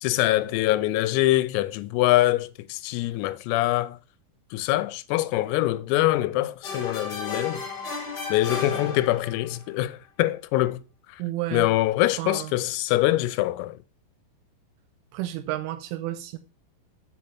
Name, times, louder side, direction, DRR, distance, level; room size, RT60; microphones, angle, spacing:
voice 1, 0.0-4.0 4.5-7.6 8.3-10.8 11.5-13.8, left 16 dB, 90° left, 3.3 m, -24 dB
sound 1, 6.6-9.6, left 4 dB, 40° left, 2.0 m, -33 dB
voice 2, 11.2-11.7 12.2-12.5 15.1-16.4, right 15 dB, 85° right, 2.9 m, -31 dB
7.7 x 5.2 x 5.6 m
omnidirectional pair, 6.0 m